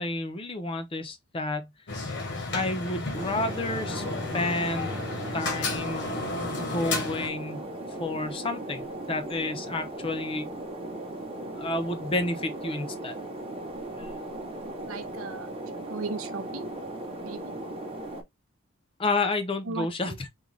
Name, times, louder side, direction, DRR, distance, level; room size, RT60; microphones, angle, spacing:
voice 1, 0.0-1.7 2.5-4.1 4.3-5.0 5.3-6.1 6.5-7.7 8.0-10.5 11.6-13.2 14.0-14.1 19.0-20.3, left 2 dB, 25° left, 0.6 m, -30 dB
sound 1, 1.9-7.3, left 3 dB, 55° left, 1.0 m, -32 dB
sound 2, 3.1-18.2, right 1 dB, 25° right, 0.9 m, -38 dB
voice 2, 14.9-15.5 15.9-16.7 17.2-17.5 19.7-20.2, right 3 dB, 85° right, 0.6 m, -36 dB
3.7 x 2.3 x 3.1 m
head